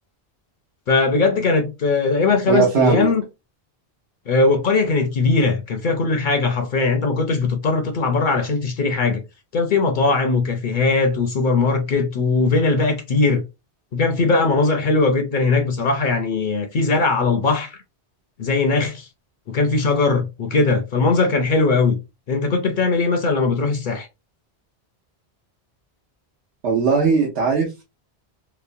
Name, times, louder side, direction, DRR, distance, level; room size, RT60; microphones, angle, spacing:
voice 1, 0.9-3.2 4.3-9.2 9.5-13.4 13.9-17.8 18.4-19.1 19.5-22.0 22.3-24.1, left 3 dB, 60° left, 0.6 m, -19 dB
voice 2, 2.5-3.1 26.6-27.8, right 5 dB, 85° right, 1.0 m, -19 dB
3.0 x 2.0 x 2.5 m
omnidirectional pair, 1.1 m